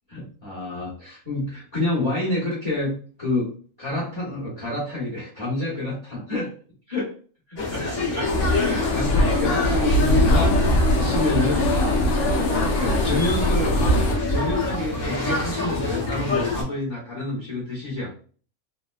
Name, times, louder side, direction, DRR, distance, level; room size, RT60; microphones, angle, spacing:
voice 1, 0.1-6.5 6.9-7.1 7.5-11.8 12.4-13.9 14.3-18.2, left 2 dB, 20° left, -8 dB, 1.1 m, -29 dB
sound 1, 7.6-16.6, left 2 dB, 40° left, 0.8 m, -27 dB
sound 2, 8.2-14.2, left 1 dB, 70° left, 0.8 m, -21 dB
3.1 x 2.1 x 2.2 m, 0.41 s
omnidirectional pair, 1.5 m